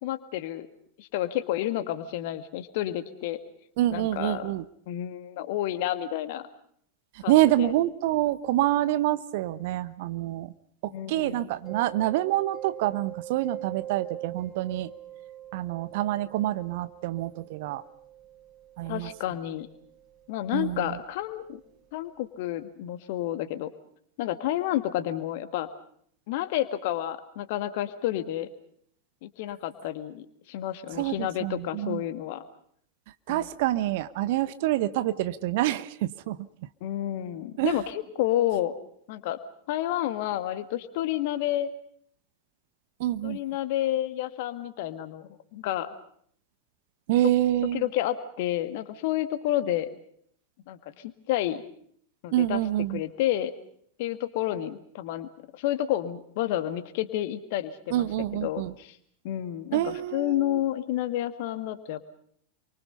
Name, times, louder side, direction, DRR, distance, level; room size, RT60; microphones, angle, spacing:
voice 1, 0.0-0.7 1.0-3.4 3.9-4.5 4.9-6.4 7.2-7.7 10.9-11.5 18.9-19.7 20.3-21.6 21.9-23.7 24.2-25.7 26.3-28.5 29.2-32.4 33.3-33.5 36.8-38.8 39.1-39.4 39.7-41.7 43.2-45.9 47.7-49.9 50.7-51.6 52.2-52.6 52.9-53.5 54.0-55.3 55.6-58.1 58.3-59.0 59.2-62.0, left 13 dB, 50° left, 10 dB, 2.0 m, -30 dB
voice 2, 3.8-4.6 7.1-10.5 10.8-14.9 15.5-17.8 18.8-19.1 20.5-21.0 30.9-32.0 33.3-36.4 37.6-37.9 43.0-43.4 47.1-47.8 52.3-53.0 57.9-58.7 59.7-60.6, right 14 dB, 50° right, 14 dB, 1.1 m, -27 dB
Mallet percussion, 11.7-21.2, right 12 dB, 30° right, 6.8 m, -44 dB
28.5 x 24.0 x 5.6 m, 0.65 s
figure-of-eight pair, 90°, 0 cm